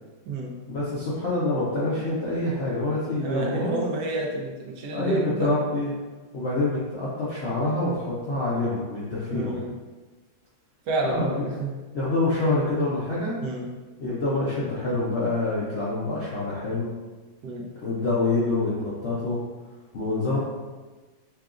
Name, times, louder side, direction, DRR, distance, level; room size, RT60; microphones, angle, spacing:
voice 1, 0.7-3.8 4.9-5.9 6.3-9.6 11.0-11.7 11.9-13.4 14.0-16.9 17.8-19.4 19.9-20.4, left 2 dB, 80° left, -8 dB, 0.5 m, -26 dB
voice 2, 3.2-5.5 9.3-9.7 10.9-11.7 13.4-13.7 17.4-17.7, right 2 dB, 65° right, -1 dB, 1.2 m, -30 dB
5.6 x 2.4 x 2.5 m, 1.3 s
omnidirectional pair, 2.1 m